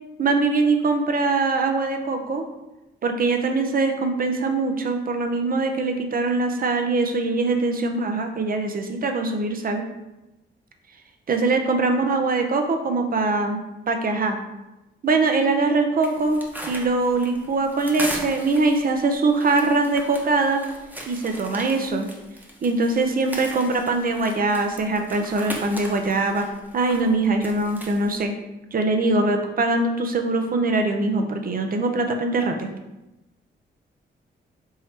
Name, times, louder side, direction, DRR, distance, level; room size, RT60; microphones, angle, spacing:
voice 1, 0.2-2.5 3.0-9.8 11.3-13.6 13.9-14.4 15.0-16.4 16.7-20.6 21.1-22.1 22.6-26.5 26.7-28.3 28.7-32.7, right 3 dB, 45° right, 5 dB, 0.7 m, -22 dB
sound 1, 16.0-28.2, equal, 10° right, 1.0 m, -38 dB
3.7 x 3.1 x 4.3 m, 0.98 s
cardioid pair, 70°, 20 cm